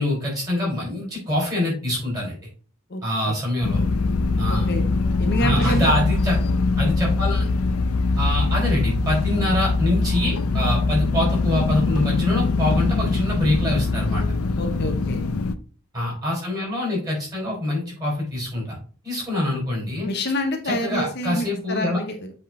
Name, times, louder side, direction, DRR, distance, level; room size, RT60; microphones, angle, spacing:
voice 1, 0.0-2.4 3.0-3.8 4.4-4.7 5.4-6.4 6.8-7.5 8.2-14.2 15.9-18.8 19.0-20.1 20.6-22.0, left 1 dB, 15° right, -4 dB, 3.5 m, -24 dB
voice 2, 2.9-3.4 4.5-4.8 5.2-5.9 14.6-15.2 20.0-22.3, left 1 dB, 50° left, 5 dB, 0.7 m, -27 dB
sound 1, 3.6-15.5, left 3 dB, 85° left, 0.5 m, -22 dB
sound 2, 4.8-7.9, right 3 dB, 70° right, 1.9 m, -34 dB
7.9 x 3.6 x 3.7 m, 0.41 s
head